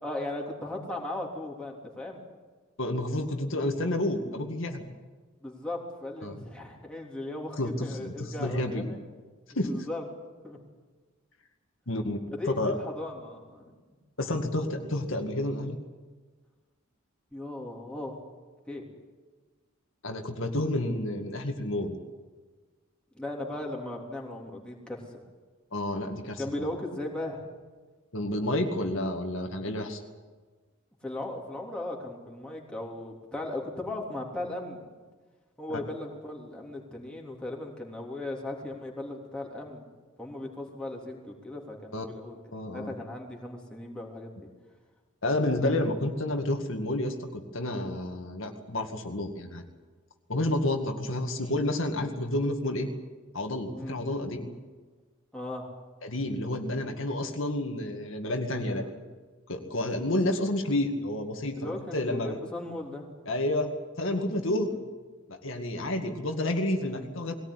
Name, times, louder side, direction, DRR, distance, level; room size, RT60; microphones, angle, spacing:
voice 1, 0.0-2.2 5.4-9.0 9.6-10.0 10.4-10.6 12.3-13.7 17.3-18.2 18.7-18.8 23.1-25.2 26.4-27.4 31.0-34.8 35.6-39.8 40.2-42.4 42.7-44.5 53.8-54.0 55.3-55.7 58.6-58.9 61.5-63.1 64.7-64.8, left 2 dB, 5° left, -2 dB, 3.4 m, -37 dB
voice 2, 2.8-4.9 6.2-6.4 7.6-9.0 9.5-9.7 11.9-12.2 12.6-12.8 14.2-15.8 20.0-22.0 25.7-26.4 28.1-30.0 35.7-35.8 41.9-42.1 42.5-42.9 45.2-49.6 50.3-52.9 53.3-54.5 56.0-58.8 59.5-62.4 63.3-64.7 65.3-67.3, left 1 dB, 65° left, 3 dB, 2.2 m, -30 dB
20.5 x 18.0 x 9.9 m, 1.4 s
head